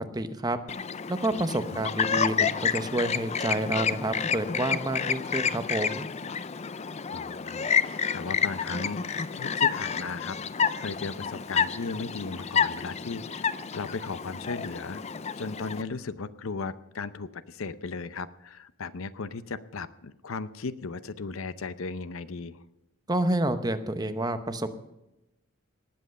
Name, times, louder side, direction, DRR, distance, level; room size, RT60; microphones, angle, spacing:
voice 1, 0.1-0.6 1.1-6.1 23.1-24.7, right 1 dB, 20° right, 9 dB, 0.8 m, -29 dB
Chirp tweet, 0.7-15.8, left 6 dB, 30° left, 0.4 m, -29 dB
voice 2, 7.1-10.4 10.8-15.0 15.4-22.6, left 4 dB, 70° left, 15 dB, 0.6 m, -36 dB
19.0 x 7.8 x 6.6 m, 0.92 s
head